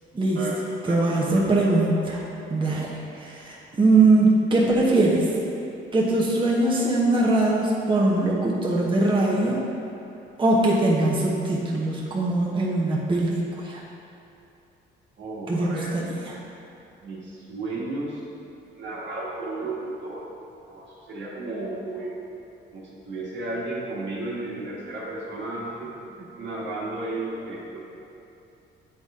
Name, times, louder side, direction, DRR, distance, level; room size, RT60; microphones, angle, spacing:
voice 1, 0.3-1.6 15.2-16.1 17.0-18.2 18.7-20.3 20.7-22.3 22.7-28.0, right 2 dB, 65° right, -5 dB, 1.5 m, -34 dB
voice 2, 0.9-2.2 2.5-5.3 5.9-9.6 10.4-13.8 15.5-16.4, right 2 dB, 25° right, -5 dB, 1.0 m, -21 dB
8.7 x 4.1 x 3.7 m, 2.7 s
cardioid pair, 90°, 20 cm